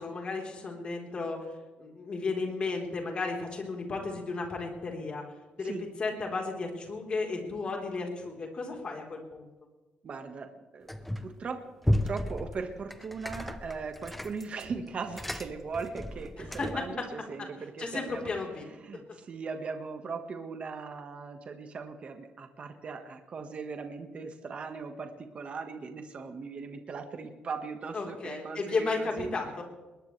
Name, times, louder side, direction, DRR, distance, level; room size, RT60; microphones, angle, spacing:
voice 1, 0.0-1.4 1.8-5.2 5.6-5.7 6.0-9.5 16.4-16.7 17.8-18.6 27.9-29.6, left 3 dB, 30° left, 1 dB, 4.0 m, -34 dB
voice 2, 10.0-10.5 10.7-11.6 11.8-18.5 18.8-29.3, right 5 dB, 35° right, 5 dB, 1.5 m, -39 dB
sound 1, 10.9-11.4 11.8-16.9, left 1 dB, 5° left, 0.8 m, -34 dB
21.0 x 20.0 x 3.3 m, 1.2 s
cardioid pair, 170°, 3 cm